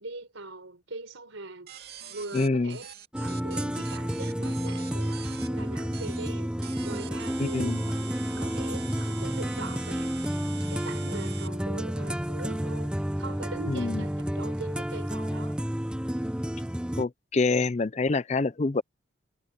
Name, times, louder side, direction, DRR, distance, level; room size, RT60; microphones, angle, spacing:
voice 1, 0.0-1.7 2.1-2.9 3.2-6.5 6.8-8.1 8.4-10.1 10.7-15.6, right 2 dB, 85° right, 4.5 m, -41 dB
sound 1, 1.7-5.5 5.9-6.3 6.6-11.5, right 8 dB, 50° right, 2.6 m, -44 dB
voice 2, 2.3-2.8 7.4-7.8 13.7-14.0 17.0-18.8, left 3 dB, 35° left, 0.5 m, -26 dB
sound 2, 3.1-17.0, equal, 5° right, 0.6 m, -31 dB
head